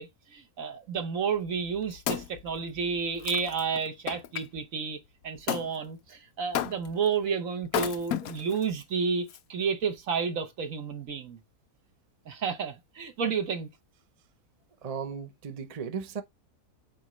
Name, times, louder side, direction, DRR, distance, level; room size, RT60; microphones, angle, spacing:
voice 1, 0.0-5.0 5.2-11.4 12.3-13.7, right 6 dB, 60° right, 1.4 m, -31 dB
Wood, 1.5-4.5 5.5-5.7 6.5-7.1 7.6-8.6 9.3-9.4, left 11 dB, 70° left, 1.0 m, -33 dB
voice 2, 14.8-16.2, right 6 dB, 40° right, 0.5 m, -36 dB
8.5 x 3.7 x 3.1 m
omnidirectional pair, 1.6 m